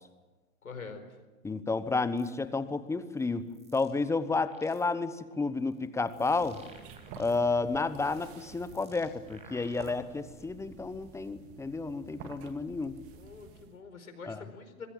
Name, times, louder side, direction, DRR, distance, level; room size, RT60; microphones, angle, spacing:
voice 1, 0.6-1.0 13.1-14.9, left 5 dB, 75° left, 7 dB, 4.7 m, -45 dB
voice 2, 1.4-3.5 3.7-6.6 7.2-13.0 14.2-14.4, left 3 dB, 5° left, 14 dB, 1.0 m, -31 dB
sound 1, 2.2-2.4 3.1-4.0 4.3-5.0 5.6-7.6 7.9-10.2, right 3 dB, 15° right, 6.2 m, -58 dB
sound 2, 6.1-13.8, right 6 dB, 30° right, 2.3 m, -51 dB
25.0 x 21.5 x 7.5 m, 1.2 s
figure-of-eight pair, 105°, 42 cm